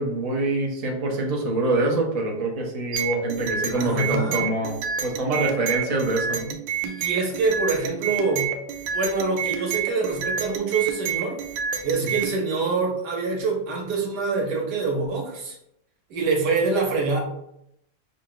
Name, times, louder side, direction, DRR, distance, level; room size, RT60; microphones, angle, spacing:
voice 1, 0.0-4.8 5.0-6.5, right 2 dB, 40° right, 0 dB, 0.5 m, -25 dB
sound 1, 2.9-12.4, right 7 dB, 85° right, 1.4 m, -29 dB
voice 2, 3.7-4.5 6.8-8.5 8.9-11.4 11.8-15.6 16.1-17.2, right 4 dB, 65° right, 0 dB, 1.5 m, -25 dB
5.2 x 2.4 x 3.8 m, 0.78 s
omnidirectional pair, 2.0 m